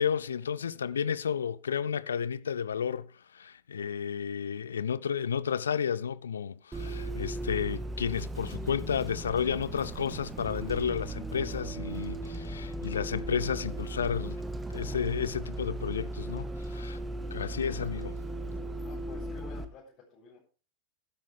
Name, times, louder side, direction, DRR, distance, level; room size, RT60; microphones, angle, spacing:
voice 1, 0.0-14.4 14.7-17.0 17.3-18.2, left 7 dB, 70° left, 0.5 m, -32 dB
Bus, 6.7-19.6, right 1 dB, 15° right, 1.6 m, -37 dB
voice 2, 18.8-20.4, left 4 dB, 35° left, 6.8 m, -51 dB
14.0 x 12.5 x 3.5 m
figure-of-eight pair, 90°, 0 cm